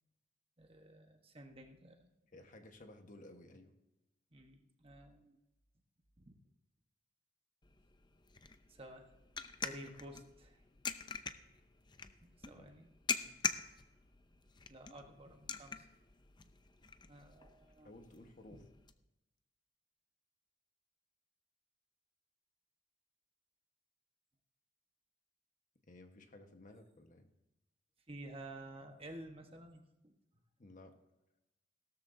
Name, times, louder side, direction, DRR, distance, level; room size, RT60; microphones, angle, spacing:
voice 1, 0.6-2.1 4.3-5.4 6.2-6.4 8.7-9.0 9.6-10.6 12.2-12.9 14.7-15.9 17.1-17.9 28.1-30.1, right 1 dB, 30° right, 4 dB, 1.2 m, -52 dB
voice 2, 2.3-3.7 12.5-12.7 13.2-13.4 17.8-18.7 25.8-27.3 30.6-30.9, left 1 dB, 45° left, 5 dB, 1.3 m, -56 dB
sound 1, 7.6-18.9, left 6 dB, 25° left, 0.6 m, -45 dB
17.0 x 13.0 x 2.7 m, 0.95 s
head